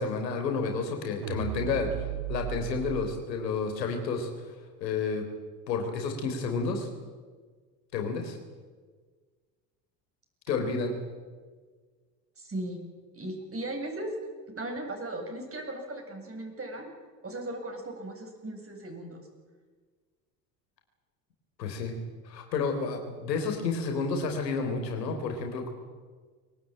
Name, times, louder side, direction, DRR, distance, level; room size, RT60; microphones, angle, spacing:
voice 1, 0.0-4.3 4.8-5.3 5.7-6.9 7.9-8.4 10.5-11.0 21.6-22.0 22.2-25.7, left 4 dB, 80° left, 4 dB, 3.9 m, -30 dB
sound 1, 1.2-3.1, right 14 dB, 70° right, 1.5 m, -35 dB
voice 2, 12.4-12.8 13.1-14.1 14.5-16.9 17.2-19.3, right 1 dB, 25° right, 3 dB, 7.6 m, -37 dB
23.5 x 18.5 x 8.9 m, 1.5 s
figure-of-eight pair, 60°, 49 cm